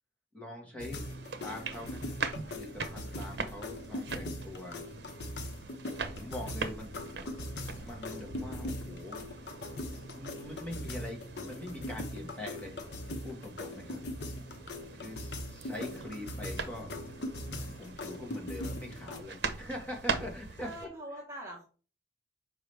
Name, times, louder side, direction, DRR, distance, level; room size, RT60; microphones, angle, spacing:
voice 1, 0.3-1.1 1.4-2.2 2.5-4.8 6.1-6.9 7.8-9.3 10.1-12.9 13.2-14.0 14.9-16.9 17.5-20.7, left 1 dB, 10° left, -2 dB, 1.7 m, -43 dB
sound 1, 0.8-19.2, left 1 dB, 75° left, 0.9 m, -41 dB
sound 2, 1.0-20.8, right 4 dB, 70° right, 0.8 m, -42 dB
voice 2, 20.6-21.7, right 1 dB, 15° right, -2 dB, 1.3 m, -47 dB
6.0 x 5.0 x 3.4 m, 0.38 s
head